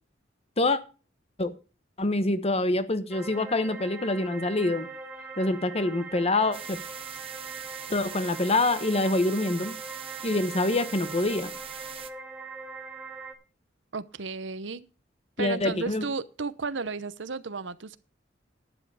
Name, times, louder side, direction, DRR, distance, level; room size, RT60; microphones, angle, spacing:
voice 1, 2.0-4.9 5.4-6.8 7.9-9.8 10.2-11.5 15.4-16.0, left 2 dB, 35° left, 1.1 m, -26 dB
sound 1, 3.1-13.3, right 4 dB, 5° right, 2.3 m, -42 dB
sound 2, 6.5-12.1, right 8 dB, 30° right, 0.9 m, -42 dB
voice 2, 13.9-14.9 15.4-18.0, right 4 dB, 70° right, 0.8 m, -33 dB
11.5 x 10.0 x 4.9 m
head